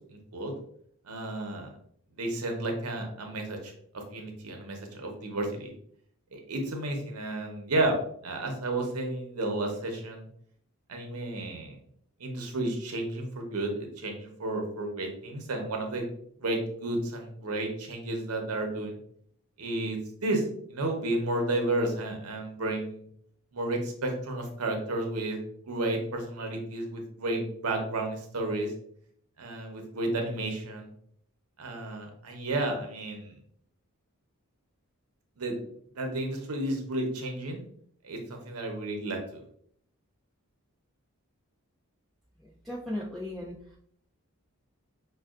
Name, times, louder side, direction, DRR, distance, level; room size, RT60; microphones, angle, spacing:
voice 1, 0.1-0.5 1.1-1.7 2.2-5.7 6.3-8.0 8.2-10.3 10.9-11.8 12.2-16.1 16.4-19.0 19.6-20.4 20.7-23.0 23.5-25.4 25.7-28.7 29.4-30.9 31.6-33.3 35.4-35.6 36.0-37.6 38.0-39.4, right 2 dB, 80° right, 3 dB, 0.8 m, -32 dB
voice 2, 42.4-43.5, left 1 dB, ahead, -6 dB, 0.4 m, -36 dB
5.3 x 2.3 x 2.4 m, 0.65 s
head